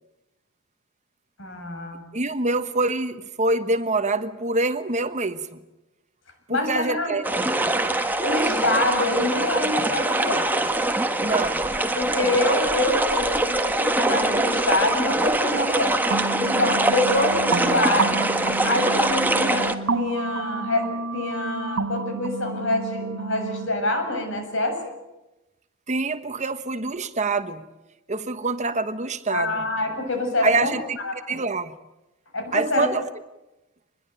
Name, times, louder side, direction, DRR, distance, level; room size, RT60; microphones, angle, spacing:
voice 1, 1.4-2.0 6.5-7.1 8.2-10.7 11.9-15.9 16.4-18.2 18.6-24.9 29.3-30.7 31.0-31.4 32.3-32.9, left 2 dB, 65° left, 5 dB, 7.4 m, -26 dB
voice 2, 2.1-5.5 6.5-7.3 11.2-11.6 25.9-27.6 28.1-29.6 30.4-31.0 31.3-31.7 32.5-33.1, right 3 dB, 35° right, 10 dB, 1.2 m, -25 dB
sound 1, 7.2-19.7, right 2 dB, 10° right, 1.6 m, -23 dB
sound 2, 16.1-23.7, right 4 dB, 75° right, 1.7 m, -30 dB
25.5 x 21.5 x 9.1 m, 0.98 s
head